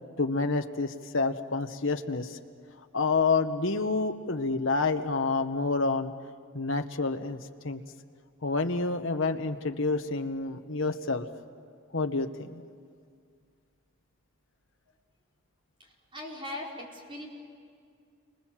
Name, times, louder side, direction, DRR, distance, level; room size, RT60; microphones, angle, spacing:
voice 1, 0.2-2.4 2.9-6.1 6.5-7.4 7.6-7.8 8.4-11.3 11.9-12.6, left 3 dB, 60° left, 6 dB, 1.2 m, -28 dB
voice 2, 15.8-17.3, left 1 dB, 25° right, -2 dB, 4.3 m, -40 dB
30.0 x 25.0 x 7.5 m, 2.2 s
head